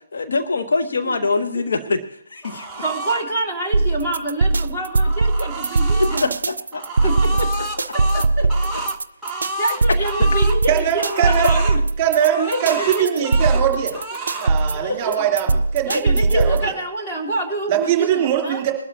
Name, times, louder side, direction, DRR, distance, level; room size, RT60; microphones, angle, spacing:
voice 1, 0.1-2.7 6.7-7.1 9.5-9.6 11.2-11.4 12.7-12.9, left 3 dB, 55° left, 5 dB, 1.0 m, -24 dB
sound 1, 2.4-3.2 4.6-6.2 6.7-10.6 11.0-11.8 12.2-13.6 13.9-14.5, right 1 dB, 5° right, 0.9 m, -30 dB
voice 2, 2.8-6.3 7.0-8.5 9.6-11.8 12.4-13.5 14.7-15.3 15.8-18.6, right 2 dB, 20° left, -1 dB, 2.9 m, -27 dB
sound 2, 3.7-16.7, right 3 dB, 55° right, 0.5 m, -20 dB
voice 3, 10.7-11.5 12.0-13.9 14.4-16.6 17.7-18.7, right 10 dB, 20° right, 3 dB, 3.1 m, -21 dB
21.5 x 12.5 x 2.9 m, 0.73 s
figure-of-eight pair, 140°, 0 cm